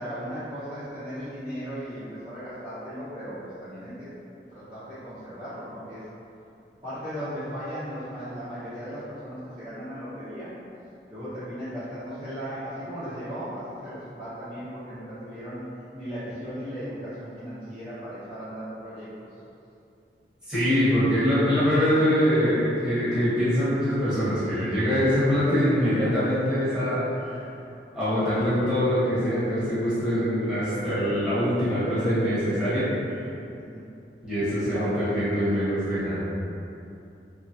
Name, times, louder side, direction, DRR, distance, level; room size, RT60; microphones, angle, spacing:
voice 1, 0.0-4.1 4.5-6.0 6.8-10.5 11.1-15.6 15.9-19.1 33.5-33.9, equal, 30° right, -18 dB, 0.9 m, -37 dB
voice 2, 20.5-27.4 27.9-32.9 34.2-36.2, equal, 5° right, -14 dB, 1.0 m, -23 dB
3.0 x 2.3 x 2.7 m, 2.7 s
head